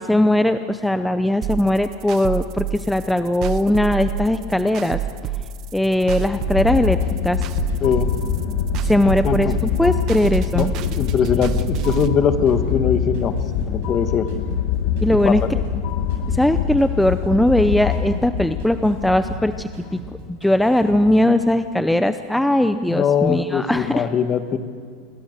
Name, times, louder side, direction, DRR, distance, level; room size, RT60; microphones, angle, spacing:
voice 1, 0.0-5.0 5.7-7.0 7.2-7.4 8.8-10.7 15.0-15.4 16.3-20.0 20.4-24.1, left 1 dB, 5° left, 9 dB, 0.7 m, -19 dB
sound 1, 1.4-12.1, right 11 dB, 50° right, 1.3 m, -28 dB
sound 2, 6.0-20.1, left 8 dB, 70° left, 1.7 m, -25 dB
sound 3, 6.6-9.3 9.5-12.2 12.5-15.8 16.1-16.5 16.8-19.5 19.7-20.2 20.4-21.1, right 4 dB, 75° right, 7.6 m, -38 dB
voice 2, 7.8-8.1 9.2-9.5 10.5-13.3 13.6-14.3 15.2-15.5 22.9-24.6, left 7 dB, 35° left, 9 dB, 1.6 m, -21 dB
27.5 x 22.0 x 6.7 m, 2.2 s
supercardioid pair, 130°, 0 cm